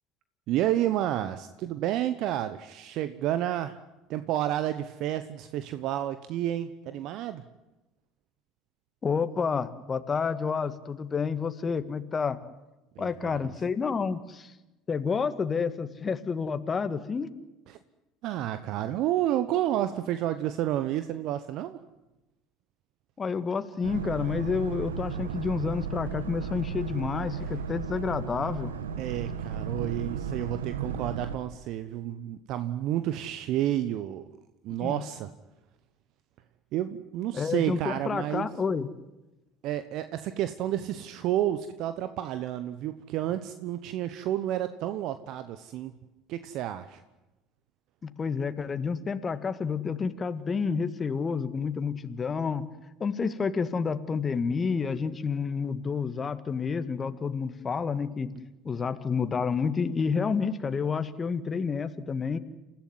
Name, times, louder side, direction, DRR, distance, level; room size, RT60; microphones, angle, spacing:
voice 1, 0.5-3.8 4.1-7.4 12.9-13.5 17.7-17.8 18.2-21.8 29.0-34.3 34.6-35.3 36.7-38.5 39.6-45.9 46.3-47.0, right 12 dB, 60° right, 11 dB, 1.1 m, -30 dB
voice 2, 9.0-12.4 13.0-14.5 14.9-17.3 23.2-28.7 34.8-35.0 37.3-38.9 48.0-52.7 53.0-58.3 58.7-62.4, left 5 dB, 30° left, 11 dB, 1.8 m, -29 dB
Boat Water vehicle, 23.8-31.4, right 7 dB, 85° right, 1.4 m, -35 dB
28.5 x 15.0 x 9.7 m, 1.0 s
hypercardioid pair, 70°, 0 cm